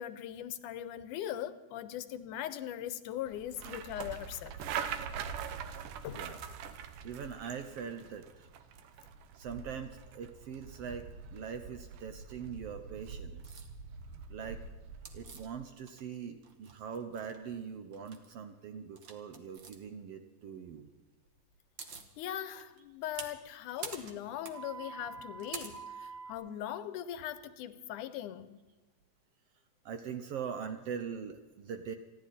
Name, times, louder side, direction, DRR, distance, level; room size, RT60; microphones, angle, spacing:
voice 1, 0.0-4.6 6.0-6.4 22.2-28.6, left 11 dB, 85° left, 2.3 m, -40 dB
sound 1, 3.3-15.5, right 7 dB, 90° right, 2.6 m, -43 dB
voice 2, 6.1-6.4 7.0-8.5 9.3-13.6 14.3-14.6 15.1-20.9 29.8-32.0, right 7 dB, 65° right, 1.6 m, -42 dB
sound 2, 13.4-13.7 15.1-16.2 16.4-17.4 17.9-18.3 19.0-19.8 21.3-21.4 21.5-22.1 22.6-26.3, right 5 dB, 45° right, 1.7 m, -45 dB
29.5 x 11.0 x 4.2 m
omnidirectional pair, 3.6 m